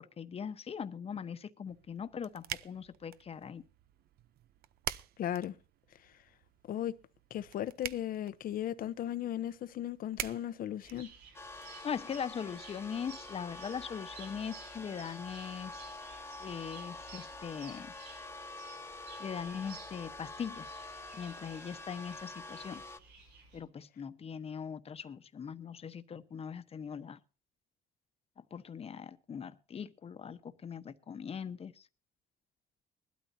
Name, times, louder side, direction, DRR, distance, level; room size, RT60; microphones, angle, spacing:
voice 1, 0.0-3.6 11.8-15.8 16.4-17.9 19.2-20.8 21.1-22.8 23.5-27.2 28.4-31.9, left 7 dB, 35° left, 1.1 m, -41 dB
sound 1, 1.7-11.7, right 12 dB, 65° right, 0.8 m, -46 dB
voice 2, 5.2-5.6 6.7-6.9 7.3-11.1, left 11 dB, 60° left, 0.9 m, -36 dB
sound 2, 10.8-23.6, right 5 dB, 85° right, 7.2 m, -55 dB
sound 3, 11.3-23.0, left 2 dB, 15° left, 1.2 m, -47 dB
21.0 x 12.5 x 2.8 m
cardioid pair, 110°, 17 cm